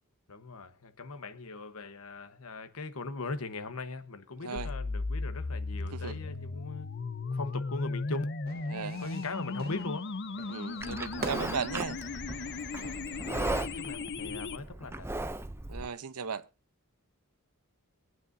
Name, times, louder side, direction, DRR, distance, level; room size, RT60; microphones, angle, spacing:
voice 1, 0.3-6.9 7.3-8.3 9.0-10.1 13.2-15.1, left 3 dB, 70° left, 1.2 m, -39 dB
voice 2, 4.4-4.7 5.9-6.2 8.7-9.1 10.5-12.0 15.7-16.5, right 5 dB, 80° right, 0.8 m, -36 dB
sound 1, 4.6-14.6, left 3 dB, 50° left, 0.7 m, -36 dB
Fire / Fireworks, 8.5-14.0, right 2 dB, 45° right, 1.7 m, -46 dB
Livestock farm animals working animals, 10.8-15.9, right 2 dB, 10° right, 0.5 m, -37 dB
23.0 x 9.2 x 2.7 m
head